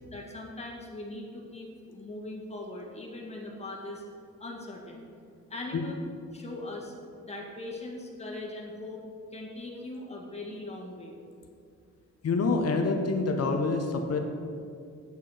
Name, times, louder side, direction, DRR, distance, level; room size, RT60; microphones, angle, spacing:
voice 1, 0.1-4.0 4.4-5.1 5.5-5.9 6.3-6.9 7.2-9.0 9.3-11.2, left 2 dB, 20° left, -3 dB, 1.8 m, -40 dB
voice 2, 12.2-14.2, left 3 dB, 55° left, 4 dB, 0.9 m, -26 dB
8.8 x 8.3 x 5.0 m, 2.4 s
wide cardioid pair, 140°, 30 cm